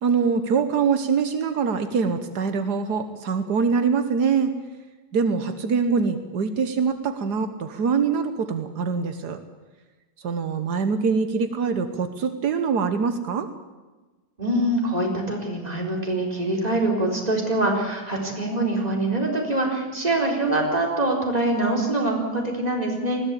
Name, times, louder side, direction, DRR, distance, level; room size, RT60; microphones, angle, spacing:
voice 1, 0.0-4.5 5.1-9.4 10.2-13.5, right 5 dB, 85° right, 8 dB, 1.8 m, -24 dB
voice 2, 14.4-23.2, right 2 dB, 25° right, 0 dB, 4.3 m, -24 dB
20.5 x 16.0 x 8.4 m, 1.2 s
omnidirectional pair, 1.7 m